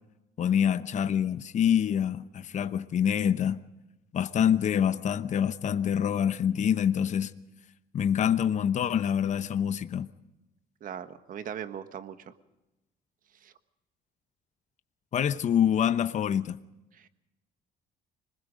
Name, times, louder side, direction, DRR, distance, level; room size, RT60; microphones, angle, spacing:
voice 1, 0.4-3.6 4.1-7.3 7.9-10.1 15.1-16.6, left 9 dB, 45° left, 0.9 m, -26 dB
voice 2, 10.8-12.3 13.4-13.5 16.9-17.1, right 9 dB, 55° right, 1.5 m, -40 dB
26.0 x 20.5 x 5.2 m
cardioid pair, 110°, 17 cm